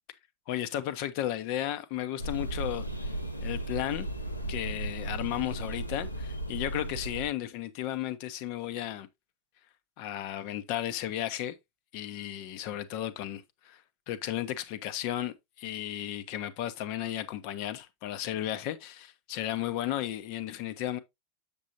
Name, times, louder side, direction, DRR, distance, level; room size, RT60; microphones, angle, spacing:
voice 1, 0.5-2.8 3.4-4.1 4.5-9.1 10.0-11.6 11.9-13.8 14.1-21.0, left 12 dB, 45° left, 0.9 m, -34 dB
sound 1, 2.2-7.3, right 1 dB, 85° left, 1.2 m, -35 dB
7.3 x 7.0 x 2.7 m
figure-of-eight pair, 90°, 0 cm